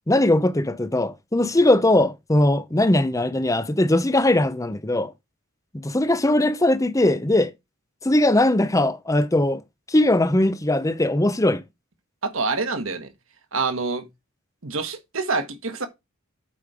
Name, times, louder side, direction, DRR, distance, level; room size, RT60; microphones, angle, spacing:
voice 1, 0.1-5.1 5.7-7.5 8.0-9.6 9.9-11.6, left 1 dB, 15° left, 0.7 m, -20 dB
voice 2, 12.2-13.1 13.5-14.0 14.6-15.9, right 4 dB, 65° right, 1.5 m, -26 dB
8.5 x 5.2 x 5.0 m
head